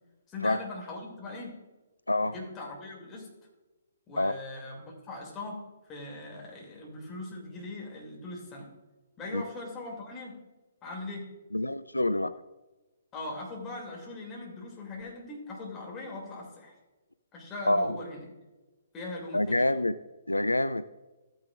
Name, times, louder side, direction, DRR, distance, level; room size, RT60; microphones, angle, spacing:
voice 1, 0.3-1.5 2.2-3.3 4.1-5.6 5.9-8.7 9.2-10.4 10.8-11.3 13.1-16.7 17.3-18.2 18.9-19.8, left 2 dB, 15° left, -2 dB, 2.5 m, -40 dB
voice 2, 11.5-12.3 17.7-18.0 19.3-20.0 20.3-20.8, left 1 dB, 80° left, 14 dB, 0.3 m, -26 dB
13.0 x 9.3 x 2.5 m, 1.1 s
figure-of-eight pair, 125°, 0 cm